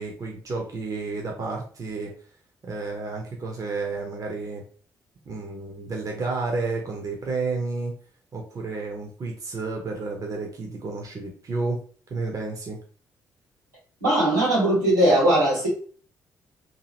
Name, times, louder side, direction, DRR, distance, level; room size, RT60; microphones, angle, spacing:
voice 1, 0.0-2.1 2.6-4.6 5.2-7.9 8.3-11.8 12.1-12.8, right 3 dB, 40° right, 1 dB, 0.8 m, -31 dB
voice 2, 14.0-15.7, right 1 dB, 90° right, -9 dB, 1.4 m, -19 dB
2.8 x 2.7 x 2.9 m, 0.42 s
figure-of-eight pair, 40°, 9 cm